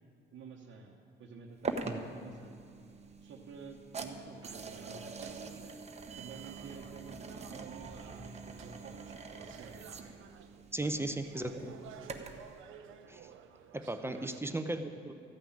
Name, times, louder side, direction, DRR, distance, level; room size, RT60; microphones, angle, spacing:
voice 1, 0.3-2.6 3.2-5.8 6.2-9.7 10.8-11.4 14.0-14.2, right 5 dB, 70° right, -2 dB, 1.1 m, -51 dB
sound 1, 1.6-12.5, right 4 dB, 35° right, 0.9 m, -44 dB
sound 2, 4.4-14.4, right 8 dB, 85° right, 0.7 m, -54 dB
voice 2, 10.7-11.5 13.1-13.3 13.7-15.1, right 2 dB, 10° right, 7 dB, 0.7 m, -36 dB
14.0 x 5.7 x 8.6 m, 2.6 s
cardioid pair, 90°, 20 cm